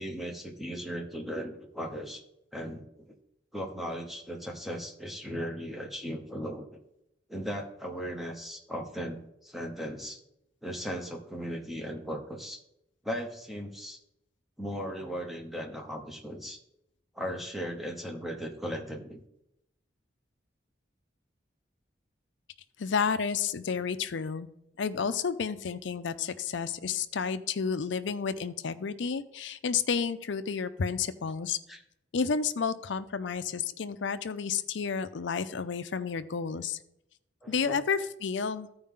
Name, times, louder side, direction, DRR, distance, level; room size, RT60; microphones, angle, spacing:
voice 1, 0.0-2.2 2.5-2.8 3.5-6.8 7.3-10.2 10.6-12.6 13.0-14.0 14.6-16.6 17.1-19.2 31.7-31.8 37.4-37.8, equal, ahead, 1 dB, 1.0 m, -37 dB
voice 2, 22.8-24.5 24.8-31.6 32.1-36.8 37.5-38.7, left 6 dB, 75° left, 12 dB, 0.5 m, -31 dB
14.0 x 4.8 x 3.7 m, 0.81 s
head